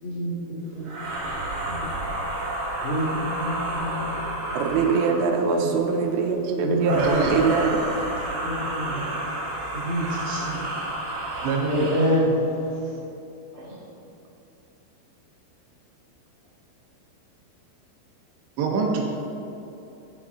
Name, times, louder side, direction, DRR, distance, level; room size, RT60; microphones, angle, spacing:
voice 1, 0.0-1.4 1.7-1.9 2.8-4.2 5.5-5.7 6.6-7.1 8.4-9.1 9.7-10.6 11.7-12.4 12.8-12.9 13.5-13.8, equal, 55° left, -8 dB, 1.4 m, -28 dB
sound 1, 0.8-5.4 6.8-12.2, right 1 dB, 55° right, 4.0 m, -31 dB
voice 2, 4.6-7.8, right 5 dB, 90° right, 3 dB, 3.5 m, -23 dB
voice 3, 6.9-7.4 11.4-12.0 18.6-19.0, right 4 dB, 70° right, 0 dB, 3.0 m, -25 dB
16.0 x 8.7 x 3.8 m, 2.9 s
omnidirectional pair, 5.8 m